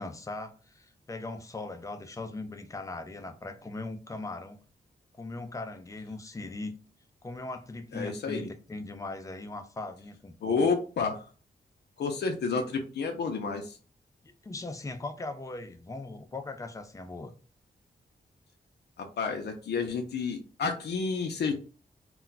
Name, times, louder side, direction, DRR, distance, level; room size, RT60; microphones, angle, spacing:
voice 1, 0.0-4.6 5.2-6.8 7.2-10.7 14.4-17.3, left 2 dB, 20° left, 0.4 m, -39 dB
voice 2, 7.9-8.5 10.4-11.3 12.0-13.8 19.0-21.5, left 4 dB, 85° left, 0.5 m, -30 dB
2.2 x 2.2 x 3.9 m
wide cardioid pair, 140°, 17 cm